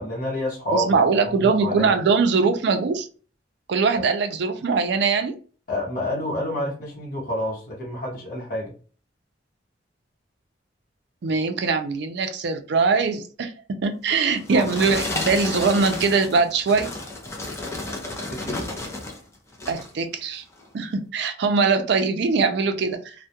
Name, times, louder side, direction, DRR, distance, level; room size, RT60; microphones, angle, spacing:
voice 1, 0.0-1.0 1.3-2.0 5.7-8.7 14.5-14.7 18.1-18.7, left 1 dB, 50° left, -4 dB, 0.9 m, -29 dB
voice 2, 0.7-3.1 3.7-5.3 11.2-16.9 19.7-20.4 20.7-23.1, right 4 dB, 65° right, 7 dB, 0.4 m, -22 dB
sound 1, 14.1-19.2 19.5-20.0 20.5-20.7, left 2 dB, 15° left, 0.5 m, -32 dB
2.2 x 2.1 x 2.7 m, 0.39 s
head